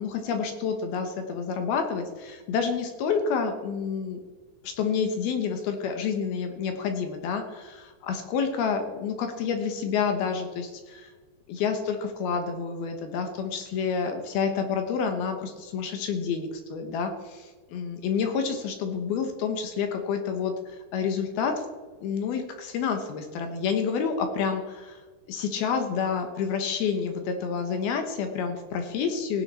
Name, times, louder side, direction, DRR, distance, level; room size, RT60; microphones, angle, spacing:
voice 1, 0.0-4.2 4.6-11.1 11.5-21.5 22.0-25.0 25.3-29.4, left 6 dB, 70° left, 6 dB, 2.8 m, -29 dB
16.5 x 10.5 x 4.3 m, 1.3 s
omnidirectional pair, 5.3 m